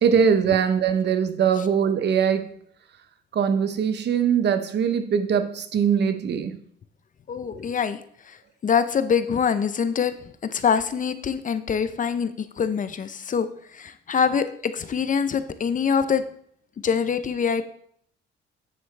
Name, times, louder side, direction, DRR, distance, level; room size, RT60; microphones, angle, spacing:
voice 1, 0.0-2.5 3.3-6.5, right 7 dB, 60° right, 9 dB, 0.9 m, -21 dB
voice 2, 7.3-8.0 8.3-8.4 8.6-10.1 10.4-16.2 16.8-17.7, left 7 dB, 40° left, 11 dB, 0.7 m, -24 dB
9.0 x 7.6 x 3.3 m, 0.63 s
cardioid pair, 90°, 20 cm